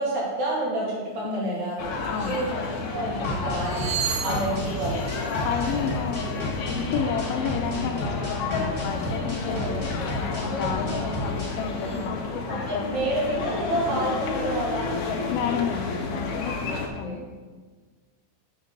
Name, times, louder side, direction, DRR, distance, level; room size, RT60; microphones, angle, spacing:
voice 1, 0.0-2.6 2.9-5.0 5.3-5.7 9.3-9.7 10.9-11.0 11.8-12.1 12.5-15.1 16.5-17.2, right 2 dB, 55° right, -5 dB, 3.5 m, -30 dB
voice 2, 1.2-1.6 2.1-2.4 4.3-4.6 5.4-6.3 6.7-12.9 15.3-17.4, left 6 dB, 80° left, 4 dB, 2.4 m, -31 dB
sound 1, 1.7-1.8 2.1-2.5 3.4-6.5 8.8-9.2 9.9-10.2 10.6-12.1, right 10 dB, 80° right, 2.2 m, -37 dB
sound 2, 1.8-16.9, left 4 dB, 65° left, 1.9 m, -31 dB
sound 3, 3.2-11.5, equal, 30° left, 0.5 m, -33 dB
6.6 x 6.5 x 6.0 m, 1.4 s
omnidirectional pair, 4.3 m